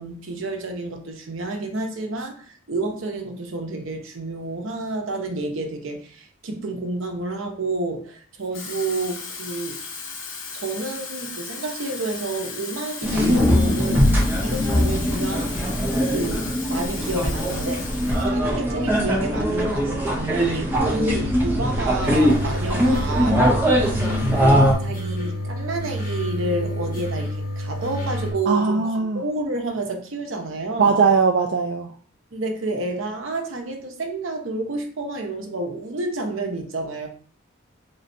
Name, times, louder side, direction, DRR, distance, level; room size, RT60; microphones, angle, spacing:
voice 1, 0.0-9.8 10.5-14.1 14.4-15.5 16.1-23.5 24.8-31.0 32.3-37.1, right 2 dB, 75° right, 0.8 m, -30 dB
Water tap faucet / Fill (with liquid), 8.4-18.3 18.7-18.9, left 5 dB, 70° left, 0.9 m, -36 dB
sound 1, 13.0-24.7, equal, 10° right, 0.7 m, -21 dB
sound 2, 22.0-28.3, equal, 45° left, 1.3 m, -29 dB
voice 2, 28.5-29.2 30.8-31.9, right 5 dB, 55° right, 0.3 m, -19 dB
3.7 x 3.2 x 2.6 m
head